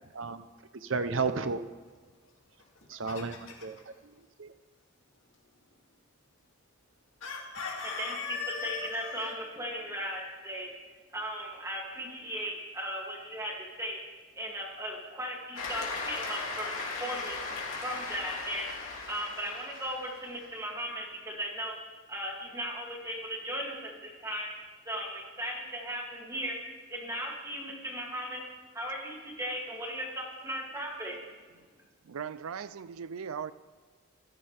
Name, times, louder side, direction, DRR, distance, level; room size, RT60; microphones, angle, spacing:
voice 1, 0.8-1.6 2.9-3.8 4.4-4.5, right 4 dB, 65° right, 0.8 m, -32 dB
Chicken rooster, 2.6-3.8 7.2-9.3, left 5 dB, 65° left, 2.6 m, -38 dB
voice 2, 8.0-10.7 11.1-13.5 13.8-14.0 14.4-17.4 17.8-18.7 19.1-21.7 22.1-24.5 24.8-26.6 26.9-28.4 28.7-31.2, equal, 15° right, 2.7 m, -37 dB
Cheering / Applause, 15.6-20.5, left 3 dB, 90° left, 2.8 m, -38 dB
voice 3, 32.0-33.5, right 7 dB, 90° right, 0.5 m, -38 dB
25.5 x 13.5 x 3.5 m
head